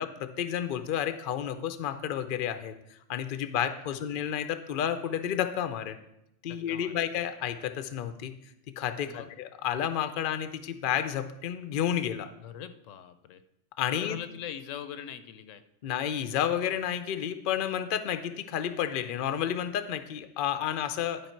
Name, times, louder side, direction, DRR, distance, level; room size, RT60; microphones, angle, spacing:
voice 1, 0.0-2.7 3.1-6.0 6.4-8.3 8.8-12.3 13.8-14.2 15.8-21.2, left 9 dB, 55° left, 10 dB, 0.6 m, -31 dB
voice 2, 3.6-4.0 6.5-7.1 9.1-9.3 12.4-13.4 13.9-15.6, left 9 dB, 80° left, 11 dB, 1.0 m, -42 dB
11.0 x 4.9 x 4.5 m, 0.81 s
omnidirectional pair, 1.3 m